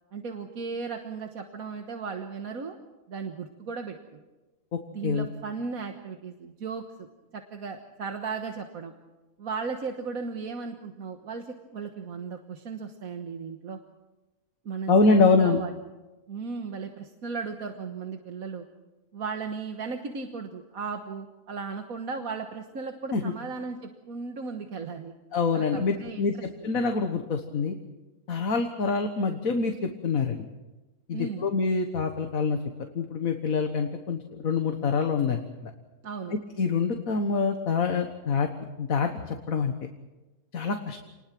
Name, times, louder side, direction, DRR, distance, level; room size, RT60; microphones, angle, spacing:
voice 1, 0.1-2.8 3.1-4.2 4.9-7.1 7.3-8.9 9.4-13.8 14.6-15.7 16.3-18.6 19.1-25.1 25.5-26.4 31.1-31.5 36.0-36.3, right 5 dB, 70° right, 5 dB, 1.8 m, -36 dB
voice 2, 14.9-15.6 23.1-23.3 25.3-27.7 28.3-30.4 31.1-35.7 36.6-38.5 38.8-39.7 40.5-41.0, left 4 dB, 65° left, 5 dB, 1.8 m, -25 dB
28.5 x 20.5 x 6.1 m, 1.1 s
omnidirectional pair, 1.6 m